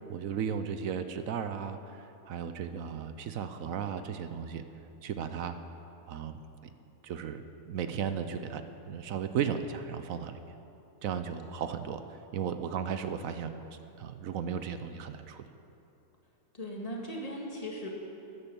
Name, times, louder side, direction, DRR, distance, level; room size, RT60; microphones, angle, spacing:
voice 1, 0.1-4.6 5.0-5.6 6.1-6.7 7.0-10.5 11.0-15.5, right 7 dB, 65° right, 10 dB, 1.0 m, -35 dB
voice 2, 16.5-17.9, equal, 25° left, -1 dB, 1.8 m, -38 dB
12.5 x 9.7 x 6.9 m, 2.8 s
omnidirectional pair, 1.7 m